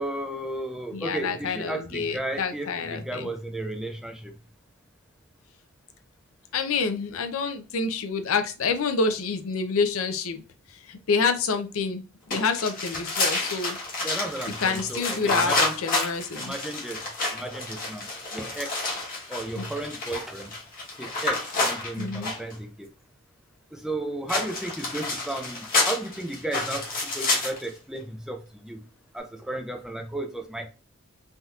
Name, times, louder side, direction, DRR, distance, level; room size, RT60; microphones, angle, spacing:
voice 1, 0.0-4.3 14.0-15.7 16.3-17.0 17.3-18.8 19.3-20.5 21.0-22.9 23.7-28.8 29.1-30.7, right 1 dB, 5° right, 0.4 m, -34 dB
voice 2, 0.9-3.3 6.5-10.4 10.7-13.8 14.6-16.5 19.5-19.7 22.0-22.3, left 4 dB, 75° left, 0.5 m, -28 dB
sound 1, 12.3-22.5 24.3-27.7, left 2 dB, 40° left, 1.2 m, -29 dB
3.4 x 2.8 x 2.3 m
head